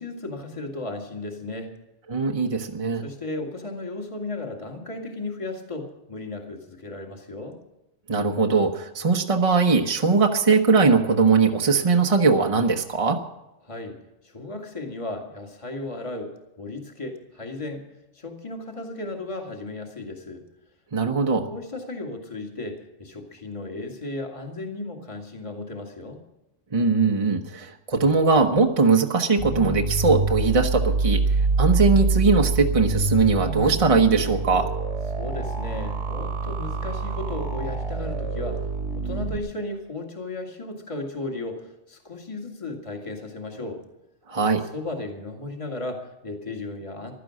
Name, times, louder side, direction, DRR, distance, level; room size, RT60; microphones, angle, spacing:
voice 1, 0.0-1.7 3.0-7.6 13.6-14.0 14.2-16.3 16.6-17.8 18.1-20.4 21.5-26.2 35.2-38.7 38.9-43.8 44.7-47.1, left 2 dB, 25° left, 2 dB, 2.0 m, -35 dB
voice 2, 2.1-3.0 8.1-13.2 20.9-21.5 26.7-34.7 44.3-44.6, right 4 dB, 30° right, 3 dB, 1.1 m, -20 dB
sound 1, 29.4-39.4, right 3 dB, 70° right, 2.1 m, -26 dB
16.0 x 12.5 x 6.3 m, 0.97 s
omnidirectional pair, 1.2 m